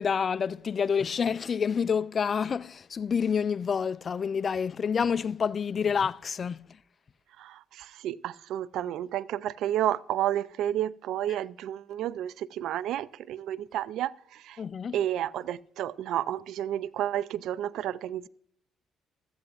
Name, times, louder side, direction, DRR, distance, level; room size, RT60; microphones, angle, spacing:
voice 1, 0.0-6.7 14.6-15.0, left 6 dB, 45° left, 0.4 m, -28 dB
voice 2, 7.4-14.6 14.9-18.3, right 11 dB, 75° right, 0.3 m, -31 dB
15.5 x 13.5 x 2.4 m
supercardioid pair, 70°, 0 cm